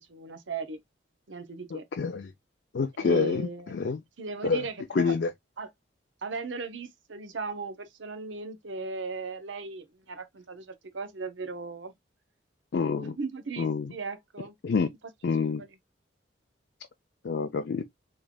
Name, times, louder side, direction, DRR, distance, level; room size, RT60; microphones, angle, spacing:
voice 1, 0.1-0.8 1.3-1.9 3.0-3.7 4.2-5.1 5.6-5.7 6.2-11.9 13.0-14.5 15.6-15.7, right 4 dB, 85° right, 0.8 m, -37 dB
voice 2, 1.7-2.3 2.7-4.0 4.4-4.6 4.9-5.3 12.7-13.2 13.6-13.9 14.6-14.9 15.2-15.6 17.2-17.8, left 5 dB, 60° left, 0.4 m, -27 dB
3.6 x 3.3 x 2.2 m
head